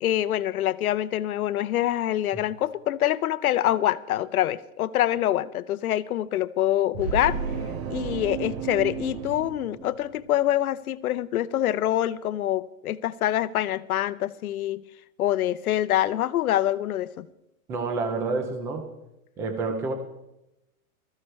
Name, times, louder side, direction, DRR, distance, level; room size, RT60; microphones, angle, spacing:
voice 1, 0.0-7.4 7.9-14.8 15.2-17.3, left 13 dB, 80° left, 0.8 m, -25 dB
sound 1, 6.9-10.4, right 6 dB, 45° right, 1.5 m, -33 dB
voice 2, 17.7-18.9 19.4-19.9, right 3 dB, 5° right, 0.4 m, -28 dB
20.0 x 14.0 x 3.2 m
hypercardioid pair, 160°, 43 cm